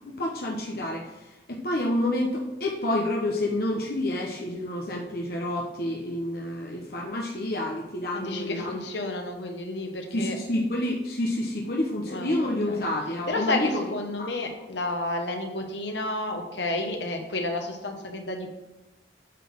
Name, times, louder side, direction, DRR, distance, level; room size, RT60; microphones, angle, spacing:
voice 1, 0.1-8.8 10.1-13.8 14.2-14.3, left 1 dB, 55° left, -1 dB, 1.0 m, -29 dB
voice 2, 8.1-10.4 12.1-12.9 13.3-18.5, left 2 dB, 75° left, 3 dB, 1.3 m, -31 dB
9.0 x 4.1 x 6.3 m, 1.0 s
head